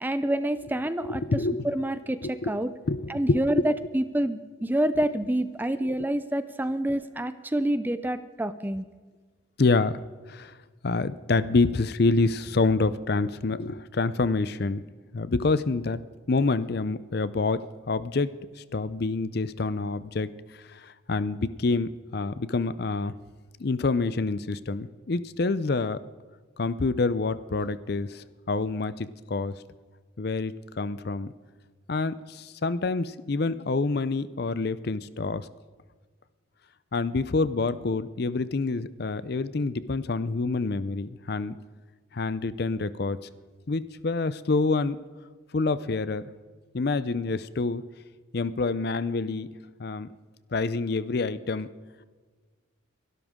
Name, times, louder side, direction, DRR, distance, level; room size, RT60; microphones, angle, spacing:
voice 1, 0.0-1.2 1.6-2.7 3.1-8.9, right 1 dB, 10° right, 12 dB, 0.4 m, -27 dB
voice 2, 1.0-1.7 2.2-2.5 2.9-3.6 9.6-10.0 10.3-10.5 10.8-14.8 15.1-16.0 16.3-17.6 17.9-18.3 18.7-20.3 20.7-23.1 23.6-26.0 26.6-29.5 30.2-31.3 31.9-35.5 36.9-41.6 42.1-43.2 43.7-45.0 45.5-46.2 46.7-47.8 48.3-49.5 49.8-50.1 50.5-51.7, left 3 dB, 50° left, 15 dB, 0.5 m, -27 dB
22.5 x 12.5 x 3.7 m, 1.4 s
head